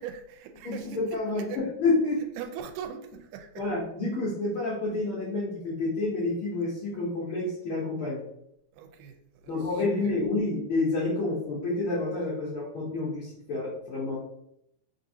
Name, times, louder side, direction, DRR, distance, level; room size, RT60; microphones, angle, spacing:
voice 1, 0.0-1.2 1.5-1.6 2.4-3.7 8.7-9.2 9.4-9.7 10.0-10.1, right 8 dB, 90° right, 6 dB, 2.1 m, -40 dB
voice 2, 0.6-2.2 3.6-8.2 9.5-14.2, left 3 dB, 75° left, -6 dB, 1.1 m, -29 dB
4.1 x 3.8 x 2.7 m, 0.78 s
omnidirectional pair, 3.6 m